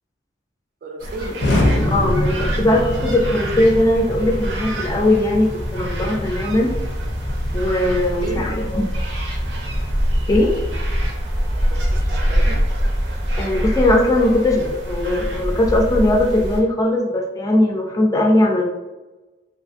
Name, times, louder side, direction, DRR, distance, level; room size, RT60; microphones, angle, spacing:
voice 1, 0.8-1.5 8.2-8.5 11.6-12.6, right 2 dB, 50° right, 4 dB, 0.4 m, -33 dB
sound 1, 1.0-16.6, equal, 85° right, 0.6 m, -24 dB
Explosion, 1.4-11.3, left 1 dB, 80° left, 0.5 m, -27 dB
voice 2, 1.9-6.7 7.5-8.8 10.3-10.5 13.4-18.6, left 1 dB, 20° left, 0 dB, 0.4 m, -19 dB
2.9 x 2.5 x 2.4 m, 1.1 s
head